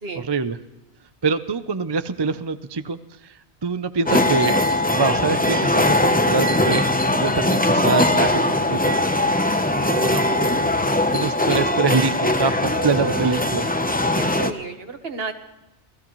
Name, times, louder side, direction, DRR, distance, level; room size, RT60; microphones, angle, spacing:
voice 1, 0.2-0.6 1.2-4.6 4.9-9.0 10.0-10.2 11.1-13.7, right 4 dB, 30° right, 11 dB, 0.5 m, -25 dB
sound 1, 4.1-14.5, left 1 dB, 10° left, 0.7 m, -20 dB
voice 2, 9.8-10.5 12.7-13.4 14.1-15.3, right 3 dB, 60° right, 7 dB, 1.6 m, -30 dB
27.5 x 16.5 x 3.1 m, 0.99 s
omnidirectional pair, 1.1 m